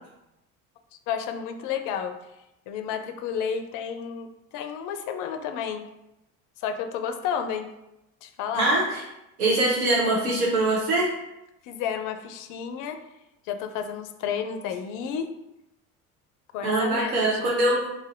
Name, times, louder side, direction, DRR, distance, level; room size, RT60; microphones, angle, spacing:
voice 1, 1.1-2.2 2.7-5.9 6.6-7.7 8.2-8.7 11.6-13.0 13.5-15.3 16.5-17.7, left 7 dB, 50° left, 8 dB, 0.4 m, -31 dB
voice 2, 8.5-9.0 9.4-11.1 16.6-17.8, right 2 dB, 80° right, -5 dB, 0.9 m, -23 dB
3.1 x 2.6 x 2.5 m, 0.90 s
hypercardioid pair, 60°, 42 cm